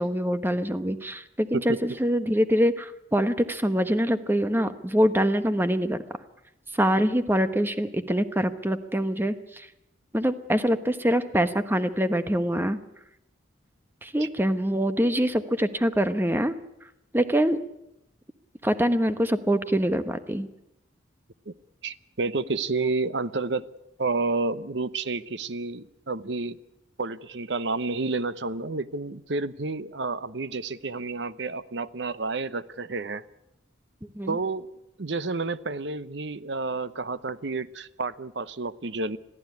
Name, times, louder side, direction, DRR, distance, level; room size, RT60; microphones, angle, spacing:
voice 1, 0.0-6.0 6.7-9.7 10.1-12.8 14.0-16.6 17.1-17.6 18.6-20.5 34.1-34.4, equal, 10° right, 10 dB, 1.1 m, -24 dB
voice 2, 21.8-23.6 24.0-26.6 27.0-33.2 34.3-34.7 35.0-39.2, right 3 dB, 65° right, 15 dB, 0.9 m, -30 dB
22.0 x 14.5 x 9.6 m, 0.85 s
head